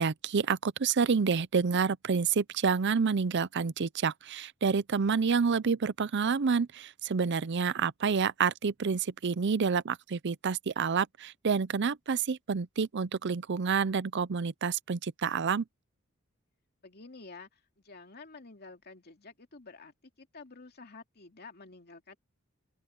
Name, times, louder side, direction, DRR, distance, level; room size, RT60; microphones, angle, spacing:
voice 1, 0.0-15.6, right 5 dB, 55° right, 0.6 m, -28 dB
voice 2, 16.8-22.2, left 3 dB, 50° left, 2.5 m, -50 dB
open air
head